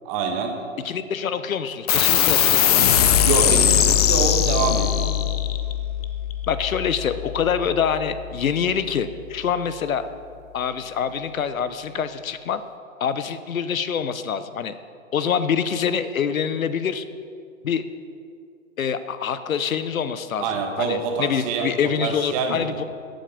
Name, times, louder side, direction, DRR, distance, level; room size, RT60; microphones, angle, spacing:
voice 1, 0.0-0.5 3.2-5.1 20.4-21.7 22.0-22.8, right 5 dB, 25° right, 3 dB, 1.2 m, -26 dB
voice 2, 0.8-2.8 6.5-10.0 10.5-12.6 13.0-14.7 15.1-17.0 17.6-17.9 18.8-20.5 20.8-22.8, left 7 dB, 80° left, 12 dB, 0.8 m, -25 dB
sound 1, 1.9-8.8, left 10 dB, 30° left, 0.5 m, -21 dB
14.0 x 7.8 x 5.0 m, 2.4 s
hypercardioid pair, 140°, 41 cm